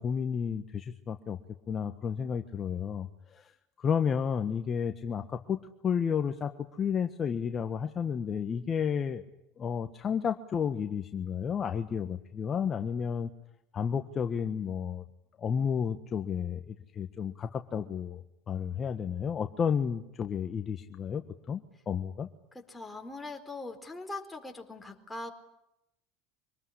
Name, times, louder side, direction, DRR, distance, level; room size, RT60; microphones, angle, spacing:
voice 1, 0.0-1.4 1.7-3.5 3.8-9.2 9.6-13.3 13.7-15.0 15.4-21.2 21.5-22.3, left 7 dB, 35° left, 7 dB, 1.4 m, -32 dB
voice 2, 22.5-25.3, left 2 dB, 10° left, 4 dB, 4.3 m, -41 dB
25.0 x 19.5 x 10.0 m, 0.85 s
hypercardioid pair, 90°, 0 cm